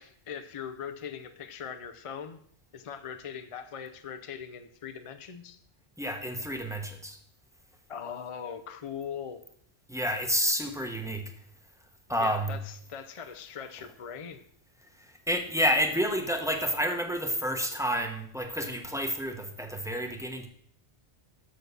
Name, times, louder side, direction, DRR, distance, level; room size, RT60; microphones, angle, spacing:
voice 1, 0.0-2.4 2.7-5.6 7.9-9.4 12.2-14.4, left 7 dB, 45° left, 9 dB, 0.5 m, -40 dB
voice 2, 6.0-7.2 9.9-11.3 12.1-12.6 15.0-20.5, equal, 5° right, 4 dB, 0.7 m, -29 dB
6.5 x 6.1 x 6.7 m, 0.66 s
omnidirectional pair, 1.1 m